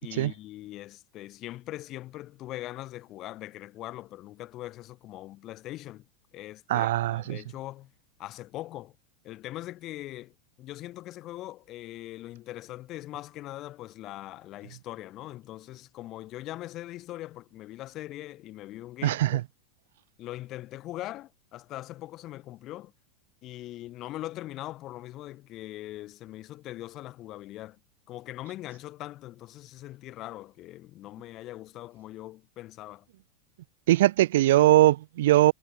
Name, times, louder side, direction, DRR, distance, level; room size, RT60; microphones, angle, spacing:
voice 1, 0.0-6.1 6.3-7.9 8.2-9.0 9.2-19.4 20.2-22.9 23.4-27.8 28.1-33.1, left 15 dB, 35° left, 3.5 m, -41 dB
voice 2, 6.7-7.4 19.0-19.4 33.9-35.5, right 15 dB, 80° right, 0.7 m, -21 dB
supercardioid pair, 150°, 0 cm